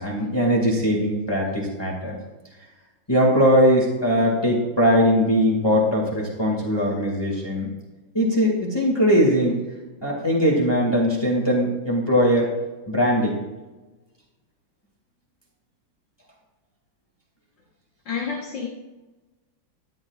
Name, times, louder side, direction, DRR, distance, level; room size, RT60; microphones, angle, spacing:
voice 1, 0.0-2.2 3.1-7.7 8.1-9.6 10.0-12.5 12.9-13.4, equal, 10° left, -2 dB, 2.1 m, -20 dB
voice 2, 18.1-18.7, left 6 dB, 65° left, -5 dB, 2.1 m, -29 dB
13.5 x 12.0 x 2.4 m, 1.2 s
omnidirectional pair, 2.2 m